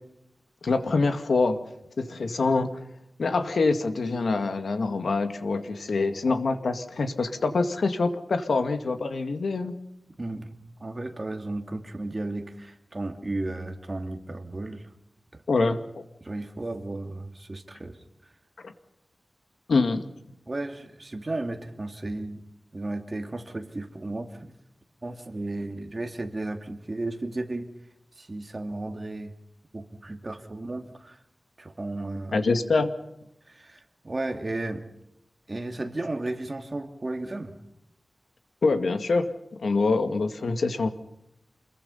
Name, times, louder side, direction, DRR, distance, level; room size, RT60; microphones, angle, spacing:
voice 1, 0.6-1.6 2.0-2.8 3.2-9.7 15.5-16.0 18.6-18.7 19.7-20.1 32.3-32.9 38.6-39.3 39.6-40.9, left 3 dB, 85° left, 8 dB, 2.1 m, -25 dB
voice 2, 10.2-14.8 16.2-18.0 20.5-22.4 22.7-24.5 25.0-27.7 28.2-29.3 29.7-31.2 31.6-32.4 33.5-34.9 35.5-37.5, right 2 dB, 35° right, 5 dB, 2.7 m, -34 dB
28.0 x 22.0 x 5.7 m, 0.80 s
wide cardioid pair, 90°, 0 cm